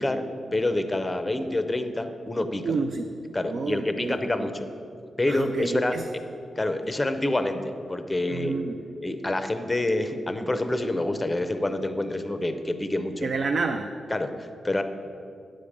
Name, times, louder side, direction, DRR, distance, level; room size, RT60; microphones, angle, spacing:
voice 1, 0.0-2.6 3.3-4.7 5.2-6.0 6.6-7.6 7.9-8.5 9.0-13.3 14.1-14.8, left 1 dB, 15° left, 8 dB, 0.5 m, -27 dB
voice 2, 2.6-3.1 3.5-4.5 5.3-6.0 8.3-8.8 13.2-13.9, right 4 dB, 55° right, 6 dB, 0.4 m, -29 dB
9.5 x 4.9 x 7.2 m, 2.4 s
wide cardioid pair, 150°, 0 cm